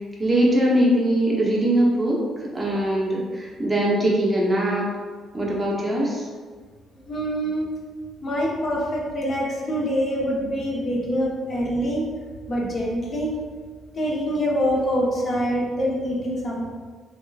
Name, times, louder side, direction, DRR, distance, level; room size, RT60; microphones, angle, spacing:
voice 1, 0.2-2.2 2.5-4.9 5.3-6.3, right 1 dB, 10° right, -5 dB, 0.9 m, -21 dB
voice 2, 7.1-7.7 8.2-12.0 12.5-13.3 13.9-16.7, equal, 35° left, -2 dB, 0.8 m, -25 dB
3.6 x 3.5 x 2.5 m, 1.5 s
cardioid pair, 130°, 0 cm